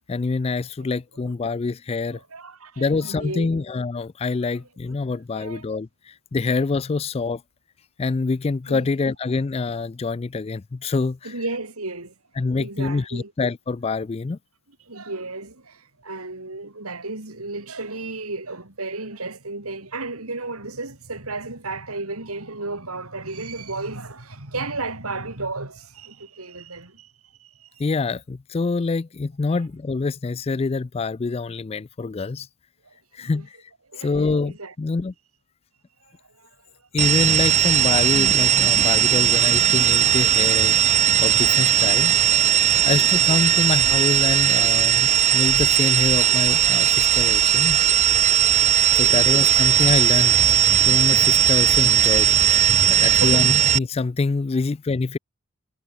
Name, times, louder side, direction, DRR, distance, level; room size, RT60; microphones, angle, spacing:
voice 1, 0.1-2.2 2.8-7.4 8.0-11.3 12.4-14.4 27.8-32.5 33.1-33.6 34.0-35.1 36.9-42.1 42.8-47.8 49.0-50.4 50.8-52.4 52.9-55.2, left 4 dB, 25° left, 0.3 m, -26 dB
voice 2, 2.1-3.6 5.3-5.6 8.7-8.9 11.2-12.1 12.6-13.3 14.9-27.8 29.5-29.6 32.8-33.4 33.9-34.1 34.4-34.7 36.0-36.7 42.8-43.2 49.0-49.3 50.7-51.1 52.7-53.5 54.5-54.7, right 3 dB, 85° right, 4.4 m, -34 dB
sound 1, 37.0-53.8, right 10 dB, 30° right, 0.7 m, -18 dB
head